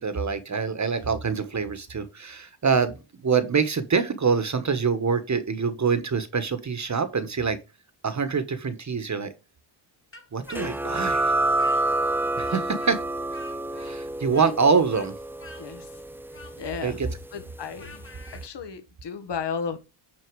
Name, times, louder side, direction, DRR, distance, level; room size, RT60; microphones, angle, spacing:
voice 1, 0.0-7.6 8.0-9.3 10.3-11.3 12.4-13.0 13.8-15.1 16.8-17.1, right 5 dB, 35° right, 1.3 m, -25 dB
Speech, 10.1-12.1 12.4-18.4, left 3 dB, 25° left, 2.1 m, -47 dB
sound 1, 10.5-17.8, right 2 dB, 5° right, 0.4 m, -28 dB
voice 2, 16.6-17.0 17.3-18.0 18.4-19.8, left 6 dB, 55° left, 1.7 m, -33 dB
9.6 x 4.5 x 4.8 m
cardioid pair, 110°, 50 cm